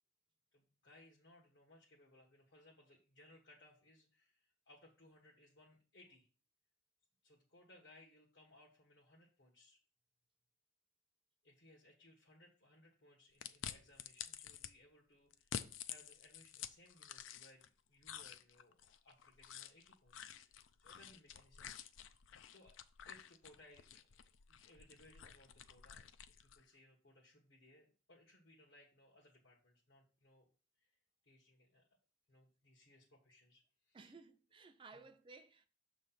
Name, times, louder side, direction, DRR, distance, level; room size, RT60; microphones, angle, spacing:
voice 1, 0.5-6.3 7.2-9.8 11.4-22.2 22.5-22.8 23.1-30.5 30.8-30.9 31.2-31.9 32.3-34.1 34.9-35.0, left 1 dB, 65° left, 1.2 m, -65 dB
sound 1, 13.4-14.7 15.3-17.7 18.0-26.6, left 9 dB, 85° left, 0.5 m, -50 dB
voice 2, 33.9-35.7, right 4 dB, 25° right, 0.4 m, -58 dB
6.8 x 3.2 x 5.6 m
head